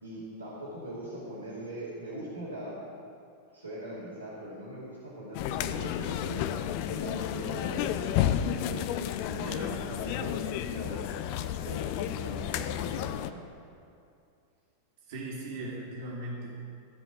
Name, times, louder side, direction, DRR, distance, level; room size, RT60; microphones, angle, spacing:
voice 1, 0.0-2.8 3.5-6.4 6.9-8.1 8.4-11.0 11.6-13.4, right 1 dB, 80° right, -8 dB, 2.8 m, -41 dB
sound 1, 5.3-13.3, left 10 dB, 45° left, 0.5 m, -31 dB
voice 2, 9.3-9.8 15.1-16.5, right 2 dB, 55° right, -7 dB, 2.4 m, -38 dB
15.5 x 5.3 x 8.5 m, 2.4 s
figure-of-eight pair, 90°, 0 cm